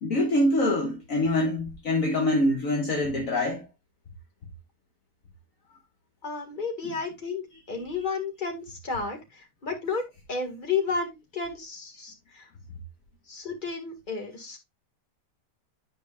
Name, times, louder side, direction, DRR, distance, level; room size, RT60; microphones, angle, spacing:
voice 1, 0.0-3.7, left 1 dB, 55° left, 1.5 m, -25 dB
voice 2, 6.2-12.5 13.3-14.6, left 4 dB, 30° left, 2.1 m, -32 dB
11.0 x 5.0 x 2.4 m
omnidirectional pair, 1.8 m